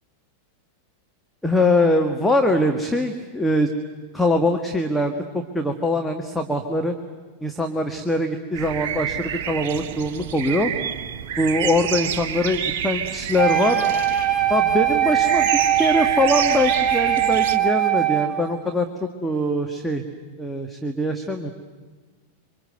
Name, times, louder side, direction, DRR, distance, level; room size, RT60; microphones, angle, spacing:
voice 1, 1.4-3.7 4.1-6.9 7.4-10.7 11.4-13.9 14.5-15.5 15.7-18.9 19.2-20.0 20.4-21.5, left 1 dB, 5° left, 4 dB, 1.8 m, -22 dB
sound 1, 8.5-17.6, right 8 dB, 50° right, 1.2 m, -29 dB
Wind instrument woodwind instrument, 13.4-18.4, right 11 dB, 15° right, 2.5 m, -21 dB
27.0 x 25.0 x 8.1 m, 1.4 s
figure-of-eight pair, 90°, 0 cm